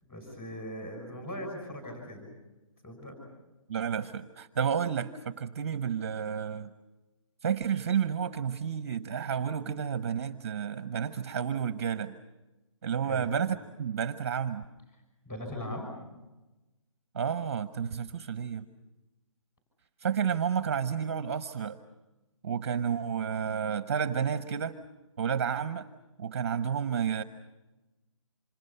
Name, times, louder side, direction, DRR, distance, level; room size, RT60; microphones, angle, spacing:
voice 1, 0.0-2.3 2.8-3.1 13.0-13.4 15.2-15.9, equal, 15° left, 4 dB, 6.1 m, -40 dB
voice 2, 3.7-6.7 7.4-12.1 12.8-14.6 17.1-18.6 20.0-21.8 22.4-24.8 25.2-25.9 26.2-27.2, right 7 dB, 25° right, 11 dB, 0.8 m, -31 dB
27.5 x 27.0 x 5.6 m, 1.1 s
hypercardioid pair, 170°, 17 cm